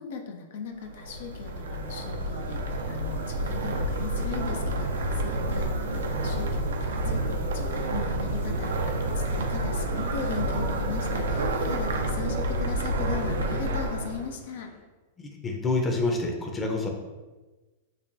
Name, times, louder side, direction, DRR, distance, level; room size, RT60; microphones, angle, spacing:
voice 1, 0.0-14.7, left 6 dB, 70° left, 3 dB, 0.5 m, -38 dB
sound 1, 0.8-14.3, right 1 dB, 85° right, 0.4 m, -29 dB
sound 2, 1.4-14.8, left 2 dB, 35° left, 1.0 m, -51 dB
voice 2, 15.2-16.9, left 2 dB, 15° left, 1 dB, 0.6 m, -27 dB
5.5 x 2.2 x 2.6 m, 1.2 s
hypercardioid pair, 130°, 0 cm